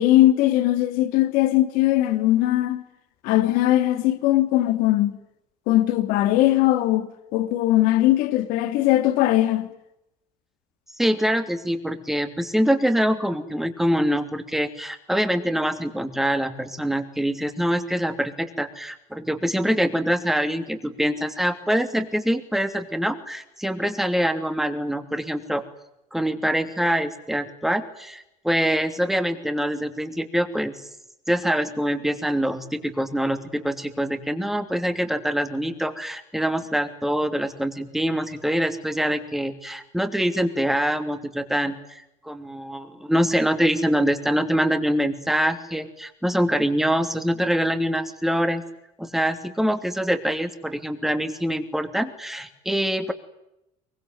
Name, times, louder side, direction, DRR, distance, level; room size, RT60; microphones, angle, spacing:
voice 1, 0.0-2.8 3.2-5.2 5.7-9.7, left 15 dB, 75° left, 3.0 m, -20 dB
voice 2, 11.0-25.6 26.1-30.7 31.3-48.6 49.0-53.1, equal, ahead, 2.9 m, -24 dB
24.0 x 23.0 x 9.4 m
cardioid pair, 135°, 15 cm